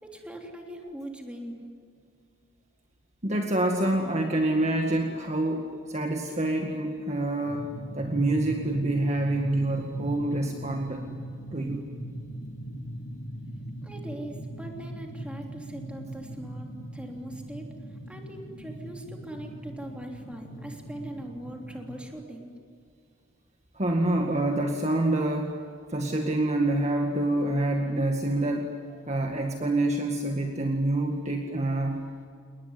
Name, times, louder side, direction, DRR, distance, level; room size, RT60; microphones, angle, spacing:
voice 1, 0.0-1.6 13.8-17.7 18.1-22.5, right 1 dB, 5° right, 1 dB, 3.4 m, -41 dB
voice 2, 3.2-7.7 7.9-11.0 11.5-11.8 23.7-25.5 25.9-32.0, right 1 dB, 35° right, 2 dB, 2.0 m, -27 dB
sound 1, 7.5-22.0, right 1 dB, 75° left, 4.5 m, -40 dB
30.0 x 20.0 x 9.8 m, 2.3 s
head